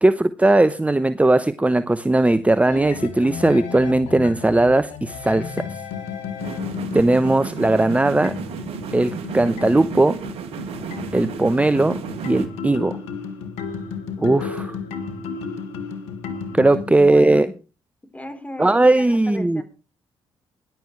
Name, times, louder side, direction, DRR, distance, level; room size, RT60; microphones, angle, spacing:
voice 1, 0.0-5.6 6.9-8.3 8.9-10.2 11.1-12.0 12.3-13.0 14.2-14.8 16.5-17.5 18.6-19.6, right 2 dB, 15° right, 13 dB, 0.9 m, -18 dB
sound 1, 2.6-16.8, left 6 dB, 85° left, 2.1 m, -33 dB
sound 2, 6.4-12.5, right 6 dB, 70° right, 2.5 m, -33 dB
voice 2, 16.6-17.5 18.1-19.6, left 1 dB, 15° left, 8 dB, 4.0 m, -36 dB
19.0 x 11.5 x 3.3 m, 0.33 s
hypercardioid pair, 55°, 10 cm